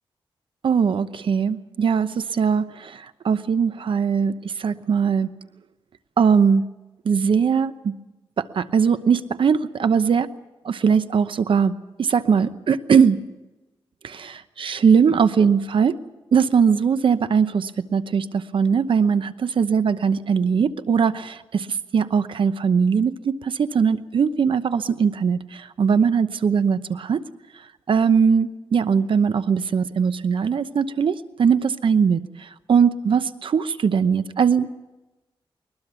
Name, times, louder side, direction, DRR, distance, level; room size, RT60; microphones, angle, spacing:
voice 1, 0.6-5.3 6.2-6.6 7.0-7.9 8.4-10.3 10.6-13.2 14.0-16.0 16.3-27.2 27.9-34.7, right 6 dB, 65° right, 12 dB, 0.9 m, -20 dB
21.0 x 21.0 x 7.0 m, 1.0 s
wide cardioid pair, 110°, 10 cm